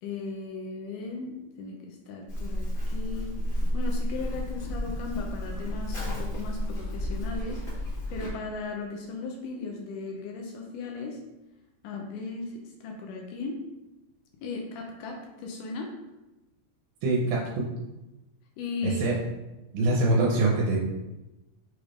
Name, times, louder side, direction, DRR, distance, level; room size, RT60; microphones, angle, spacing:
voice 1, 0.0-11.2 11.8-13.6 14.4-15.9 18.6-19.0, left 3 dB, 80° left, 1 dB, 1.9 m, -37 dB
Livestock farm animals working animals, 2.3-8.3, left 1 dB, 50° left, 0.9 m, -31 dB
voice 2, 17.0-17.6 18.8-19.2 19.7-20.8, right 2 dB, 90° right, -3 dB, 2.4 m, -24 dB
6.2 x 3.4 x 2.4 m, 1.0 s
omnidirectional pair, 4.1 m